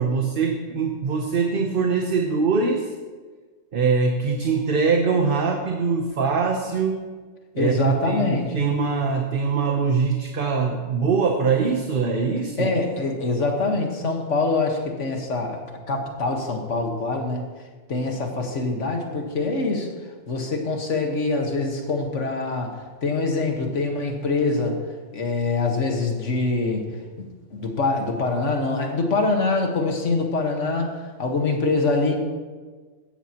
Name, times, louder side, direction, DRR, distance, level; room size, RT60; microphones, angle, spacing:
voice 1, 0.0-2.9 3.7-7.0 7.5-12.7, right 5 dB, 50° right, 3 dB, 1.0 m, -23 dB
voice 2, 7.6-8.7 12.6-17.5 17.9-19.9 20.3-24.8 25.1-26.9 27.2-32.2, left 3 dB, 85° left, 3 dB, 1.8 m, -24 dB
16.0 x 12.0 x 3.0 m, 1.4 s
omnidirectional pair, 1.2 m